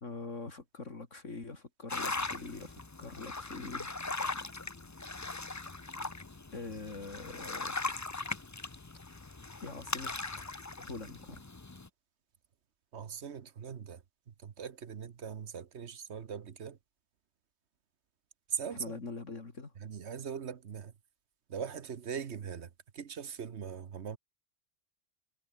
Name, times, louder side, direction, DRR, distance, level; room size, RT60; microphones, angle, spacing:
voice 1, 0.0-4.0 6.5-7.8 9.6-10.1 10.8-11.4 18.7-19.7, left 3 dB, 70° left, 3.3 m, -43 dB
sound 1, 1.9-11.9, left 3 dB, 20° left, 0.6 m, -39 dB
voice 2, 12.9-16.8 18.5-18.9 19.8-20.9 21.5-24.2, right 7 dB, 60° right, 1.3 m, -41 dB
omnidirectional pair, 1.3 m